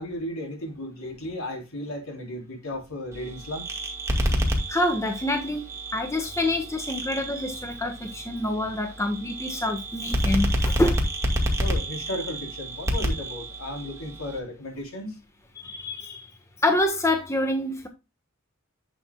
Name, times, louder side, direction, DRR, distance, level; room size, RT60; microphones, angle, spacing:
voice 1, 0.0-3.6 11.6-15.2, left 1 dB, 75° left, 3.9 m, -34 dB
sound 1, 3.1-14.4, equal, 15° right, 2.1 m, -29 dB
voice 2, 4.7-5.7 5.9-11.0 15.6-16.3 16.6-17.9, left 1 dB, 15° left, 1.3 m, -26 dB
10.5 x 7.0 x 2.3 m
head